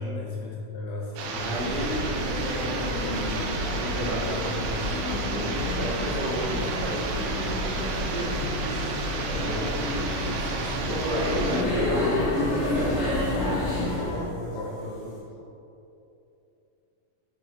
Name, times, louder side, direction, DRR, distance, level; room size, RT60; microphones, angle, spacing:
voice 1, 0.0-1.5 11.2-11.3 14.1-14.8 15.4-15.5, left 3 dB, 85° left, -2 dB, 1.5 m, -35 dB
sound 1, 1.2-14.2, left 1 dB, 50° left, 2.2 m, -29 dB
sound 2, 1.2-11.6, right 4 dB, 80° right, 2.3 m, -33 dB
voice 2, 1.4-8.6 9.3-14.2 14.7-15.2, equal, 45° right, -7 dB, 1.5 m, -33 dB
sound 3, 5.5-14.3, left 2 dB, 70° left, 2.5 m, -44 dB
5.9 x 4.7 x 4.1 m, 2.8 s
omnidirectional pair, 3.9 m